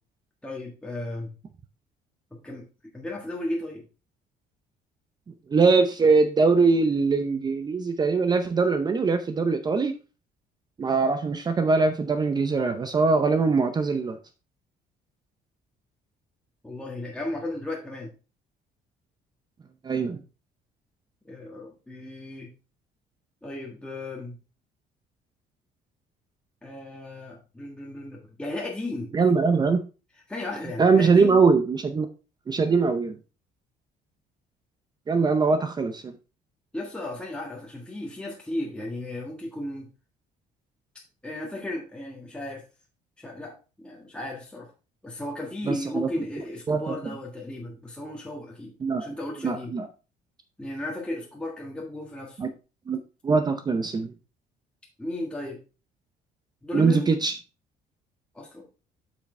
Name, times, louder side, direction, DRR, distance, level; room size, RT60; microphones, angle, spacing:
voice 1, 0.4-1.3 2.3-2.6 2.9-3.9 16.6-18.1 21.2-22.5 23.4-24.4 26.6-29.1 30.3-31.4 36.7-39.9 41.2-42.6 43.2-44.7 45.0-48.7 49.0-49.7 50.6-52.4 55.0-55.6 56.6-57.1 58.3-58.6, left 1 dB, 5° left, -2 dB, 1.6 m, -35 dB
voice 2, 5.5-9.9 10.8-14.2 19.8-20.2 29.1-29.8 30.8-32.1 32.5-33.2 35.1-36.1 45.7-46.1 46.7-46.9 48.8-49.1 49.4-49.9 52.4-52.5 52.9-53.0 53.2-54.1 56.7-57.3, right 4 dB, 25° right, 9 dB, 0.6 m, -22 dB
8.3 x 6.1 x 3.3 m, 0.32 s
cardioid pair, 135°, 17 cm